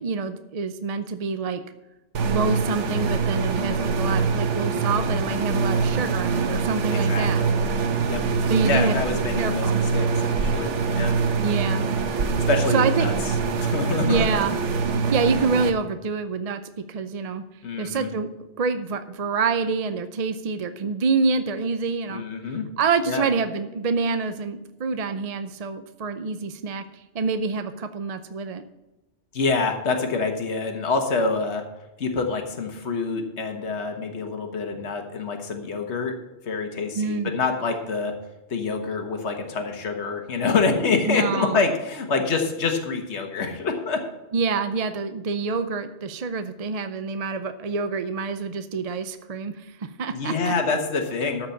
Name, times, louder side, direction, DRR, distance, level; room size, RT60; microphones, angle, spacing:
voice 1, 0.0-1.6 2.2-7.4 8.5-9.8 11.4-11.9 12.7-13.1 14.1-14.6 15.1-16.6 16.9-17.4 17.8-18.3 18.6-22.2 22.8-28.6 36.9-37.3 41.1-41.6 44.3-50.5, right 4 dB, 45° right, 10 dB, 0.5 m, -26 dB
sound 1, 2.1-15.7, right 5 dB, 85° right, 1.2 m, -24 dB
voice 2, 6.9-7.5 8.1-8.2 8.6-11.1 12.4-13.1 13.6-14.5 17.6-18.1 22.1-22.7 23.1-23.3 29.3-31.6 32.0-36.1 36.4-38.1 38.5-44.0 50.1-51.5, left 4 dB, 70° left, 5 dB, 1.6 m, -26 dB
13.5 x 4.9 x 7.2 m, 1.0 s
omnidirectional pair, 1.2 m